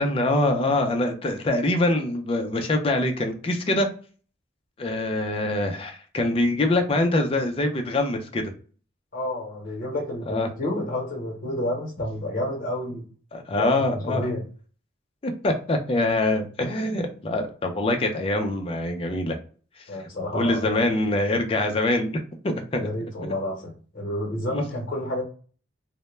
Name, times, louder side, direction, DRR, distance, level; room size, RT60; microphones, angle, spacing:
voice 1, 0.0-3.9 4.8-8.4 10.3-10.5 13.3-14.3 15.2-19.4 20.3-22.1 22.4-22.9 24.5-24.6, left 2 dB, 30° left, 4 dB, 0.4 m, -24 dB
voice 2, 9.1-13.1 13.5-13.7 14.1-14.4 19.9-20.7 22.8-25.2, left 1 dB, 45° left, 0 dB, 0.8 m, -30 dB
2.1 x 2.0 x 3.0 m, 0.40 s
head